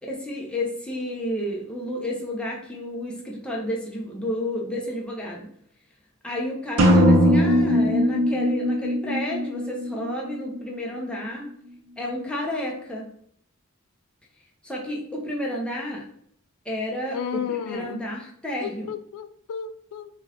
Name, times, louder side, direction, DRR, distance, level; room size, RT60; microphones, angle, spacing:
voice 1, 0.0-5.5 6.2-11.5 12.0-13.1 14.6-16.0 16.7-18.9, left 1 dB, 5° left, -3 dB, 0.6 m, -31 dB
sound 1, 6.8-10.6, equal, 75° right, 0.6 m, -20 dB
voice 2, 17.1-18.0 18.6-20.1, left 7 dB, 85° left, 11 dB, 0.3 m, -32 dB
3.7 x 2.3 x 2.9 m, 0.66 s
head